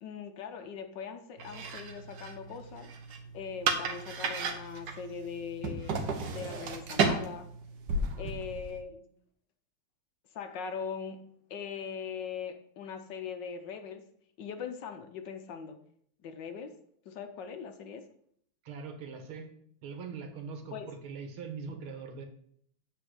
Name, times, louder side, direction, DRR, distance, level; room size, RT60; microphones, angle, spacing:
voice 1, 0.0-2.9 3.3-7.5 8.2-9.1 10.3-14.0 14.4-15.8 16.2-16.8 17.1-18.1 20.7-20.9, left 6 dB, 65° left, 7 dB, 1.4 m, -41 dB
sound 1, 1.4-8.8, right 4 dB, 65° right, 1.5 m, -34 dB
voice 2, 18.6-19.5 19.8-22.3, right 5 dB, 90° right, 5 dB, 2.1 m, -42 dB
9.1 x 4.2 x 6.3 m, 0.66 s
omnidirectional pair, 2.2 m